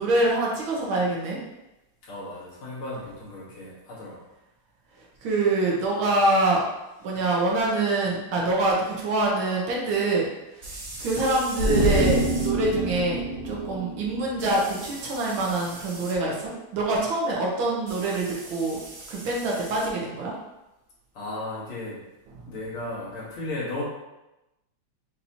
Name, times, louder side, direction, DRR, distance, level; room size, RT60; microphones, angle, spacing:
voice 1, 0.0-1.4 5.2-6.6 7.0-10.3 10.5-10.7 11.0-18.8 19.1-20.4, right 2 dB, 75° right, -3 dB, 1.7 m, -25 dB
voice 2, 2.0-4.2 21.1-22.0 22.4-23.8, left 2 dB, 80° left, -5 dB, 2.2 m, -35 dB
sound 1, 7.2-7.3 10.6-12.5 14.4-16.2 17.9-19.9, right 2 dB, 45° right, 1.1 m, -41 dB
sound 2, 11.6-15.0 15.3-15.4, right 1 dB, 60° left, 0.6 m, -26 dB
6.9 x 2.8 x 2.8 m, 0.96 s
omnidirectional pair, 2.3 m